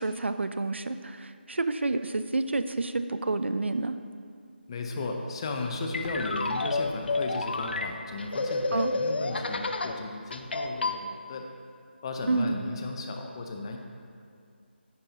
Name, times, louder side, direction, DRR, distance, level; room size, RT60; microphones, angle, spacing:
voice 1, 0.0-3.9 8.7-8.9 12.3-12.6, right 3 dB, 85° right, 10 dB, 0.5 m, -29 dB
voice 2, 4.7-11.4 12.0-13.8, left 3 dB, 25° left, 3 dB, 0.7 m, -35 dB
sound 1, 5.6-10.0 10.3-11.0, left 3 dB, 60° left, 0.6 m, -30 dB
9.6 x 9.0 x 2.8 m, 2.3 s
figure-of-eight pair, 160°, 6 cm